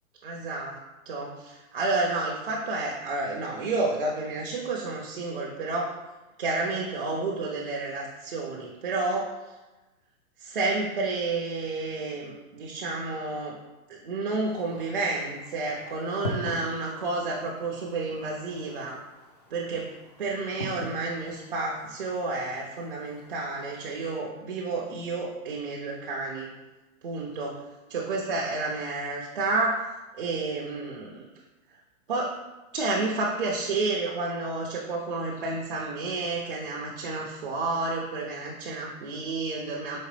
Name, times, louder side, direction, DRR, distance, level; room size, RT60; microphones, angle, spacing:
voice 1, 0.2-0.8 1.1-5.9 6.4-9.4 10.4-13.6 13.9-19.0 19.5-19.9 20.2-26.5 27.0-27.6 27.9-29.8 30.2-31.3 32.1-32.4 32.7-40.0, right 3 dB, 40° right, -2 dB, 0.4 m, -30 dB
sound 1, 14.4-24.1, equal, 30° left, 0.4 m, -43 dB
4.9 x 2.9 x 3.2 m, 1.1 s
hypercardioid pair, 170°, 42 cm